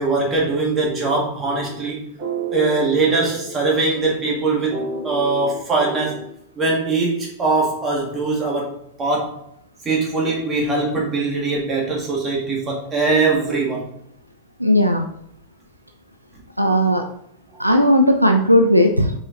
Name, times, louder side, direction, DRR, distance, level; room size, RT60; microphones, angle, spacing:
voice 1, 0.0-2.1 2.5-6.2 6.6-9.4 9.8-14.0, right 3 dB, 25° right, -2 dB, 2.3 m, -21 dB
sound 1, 0.8-6.4, right 3 dB, 40° right, 2.4 m, -32 dB
voice 2, 14.6-15.0 16.6-17.0 17.6-19.1, equal, 85° right, 4 dB, 0.6 m, -16 dB
5.5 x 4.9 x 4.0 m, 0.68 s
figure-of-eight pair, 90°, 0 cm